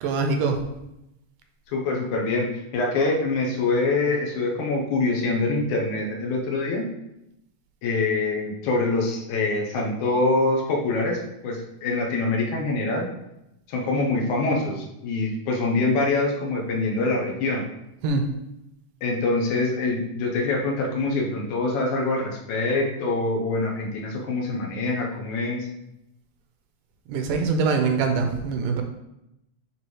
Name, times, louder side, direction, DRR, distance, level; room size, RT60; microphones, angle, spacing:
voice 1, 0.0-0.6 18.0-18.3 27.1-28.8, right 4 dB, 80° right, 5 dB, 2.2 m, -23 dB
voice 2, 1.7-6.9 7.8-13.1 13.7-17.6 19.0-25.7, left 3 dB, 70° left, -1 dB, 2.3 m, -25 dB
9.2 x 3.6 x 3.2 m, 0.86 s
omnidirectional pair, 3.7 m